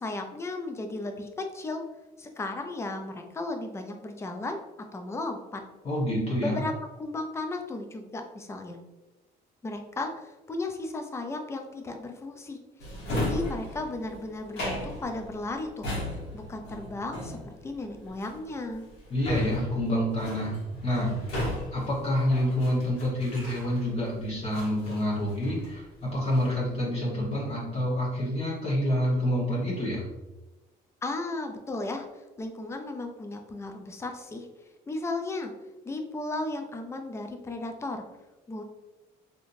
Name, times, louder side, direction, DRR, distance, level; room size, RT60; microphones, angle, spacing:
voice 1, 0.0-1.8 2.2-4.6 4.9-5.6 6.4-6.7 7.0-8.8 9.6-12.6 13.1-15.9 16.3-18.9 31.0-32.1 32.4-34.5 34.9-35.5 35.8-38.0 38.5-38.6, left 2 dB, 15° left, 4 dB, 0.4 m, -35 dB
voice 2, 5.8-6.6 19.1-20.6 20.8-21.1 21.7-30.1, equal, 35° left, -6 dB, 1.1 m, -27 dB
Drawer open or close, 12.8-24.1 24.5-25.8 26.1-26.7, left 1 dB, 80° left, 1.2 m, -35 dB
3.4 x 2.7 x 2.5 m, 1.1 s
cardioid pair, 110°, 17 cm